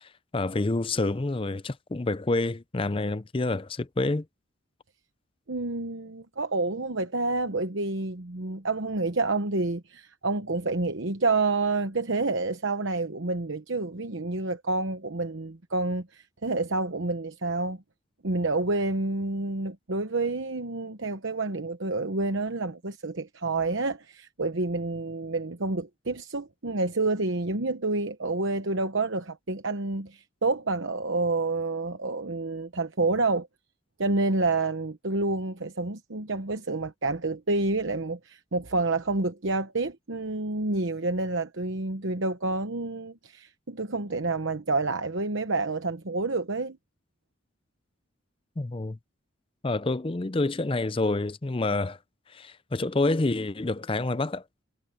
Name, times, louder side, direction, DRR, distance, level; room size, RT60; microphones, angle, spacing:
voice 1, 0.0-4.2 48.6-49.0 49.6-52.0 52.3-54.4, left 2 dB, 25° left, 0.5 m, -28 dB
voice 2, 5.5-17.8 18.2-33.5 34.0-46.8, right 3 dB, 65° right, 1.1 m, -28 dB
head